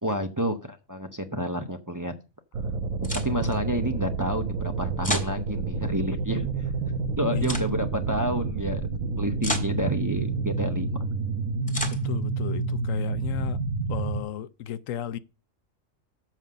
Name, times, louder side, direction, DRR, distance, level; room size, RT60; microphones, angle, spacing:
voice 1, 0.0-2.1 3.2-6.5 7.2-8.9 9.2-11.0, equal, 20° right, 0.7 m, -29 dB
sound 1, 2.5-14.2, right 4 dB, 85° right, 1.3 m, -29 dB
sound 2, 3.0-3.6 5.0-5.3 7.4-7.7 9.4-9.7 11.7-12.1, left 1 dB, 5° left, 1.6 m, -31 dB
voice 2, 11.9-13.6 13.9-15.2, left 10 dB, 80° left, 1.0 m, -34 dB
7.5 x 5.6 x 6.5 m
omnidirectional pair, 1.4 m